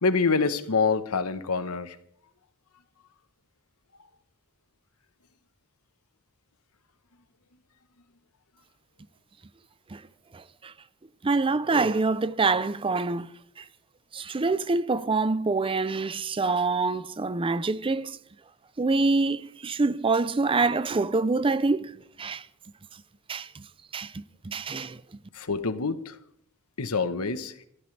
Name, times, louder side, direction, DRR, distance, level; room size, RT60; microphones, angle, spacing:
voice 1, 0.0-2.0 25.3-26.2 26.8-27.7, left 4 dB, 75° left, 1.1 m, -26 dB
voice 2, 10.3-10.7 11.2-13.3 13.6-13.7 14.1-18.2 18.8-22.4 23.3-23.6 23.9-25.0, right 3 dB, 25° right, 0.5 m, -26 dB
25.5 x 14.5 x 3.3 m
head